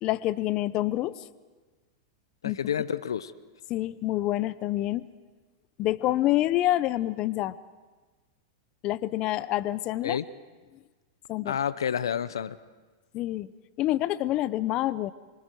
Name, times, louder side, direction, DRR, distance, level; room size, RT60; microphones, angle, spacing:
voice 1, 0.0-1.3 2.4-2.6 3.7-5.1 5.8-7.6 8.8-10.2 11.3-11.6 13.1-13.5 13.8-15.1, left 15 dB, 40° left, 17 dB, 0.6 m, -27 dB
voice 2, 2.4-3.3 10.0-10.2 11.5-12.6, left 8 dB, 85° left, 17 dB, 0.7 m, -29 dB
26.5 x 24.5 x 4.6 m, 1.3 s
hypercardioid pair, 115°, 2 cm